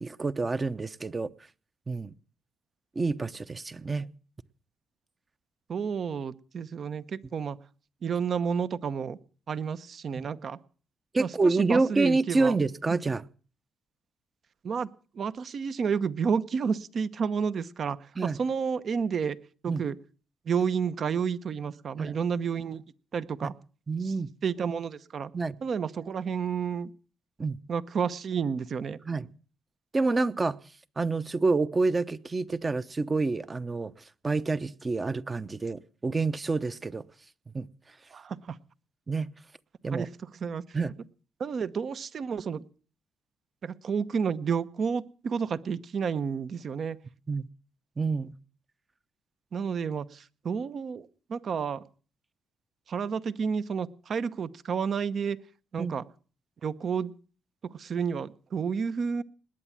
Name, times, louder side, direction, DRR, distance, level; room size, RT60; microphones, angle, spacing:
voice 1, 0.0-1.3 1.9-2.1 2.9-4.1 10.2-10.3 11.1-13.2 18.2-18.4 19.7-19.8 22.0-22.2 23.4-23.5 23.9-24.3 25.3-25.6 27.4-27.6 29.0-29.3 29.9-30.6 31.0-33.9 34.2-37.0 37.5-37.7 39.1-39.3 39.8-40.1 40.7-41.0 47.3-47.5 48.0-48.3 55.8-55.9, right 3 dB, 25° right, 0.8 m, -28 dB
voice 2, 5.7-7.6 8.0-9.2 9.5-10.6 11.2-12.6 14.6-14.9 15.1-19.4 19.6-20.0 20.5-22.8 23.1-23.5 24.0-24.1 24.4-25.3 25.6-26.9 27.7-29.0 38.1-38.6 39.9-40.1 40.4-40.6 41.4-42.6 43.6-47.0 49.5-51.8 52.9-55.4 55.7-56.0 56.6-57.1 57.6-59.2, right 6 dB, 55° right, 0.9 m, -30 dB
19.5 x 9.1 x 7.3 m
cardioid pair, 90°, 0 cm